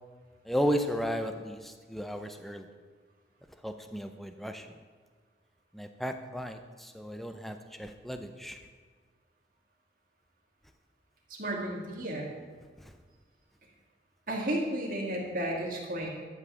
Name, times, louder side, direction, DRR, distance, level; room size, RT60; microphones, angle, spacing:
voice 1, 0.5-2.7 3.6-4.7 5.7-8.6, equal, ahead, 7 dB, 0.6 m, -34 dB
voice 2, 11.3-12.3 14.3-16.1, right 1 dB, 45° right, -2 dB, 2.3 m, -33 dB
12.0 x 5.6 x 7.5 m, 1.5 s
head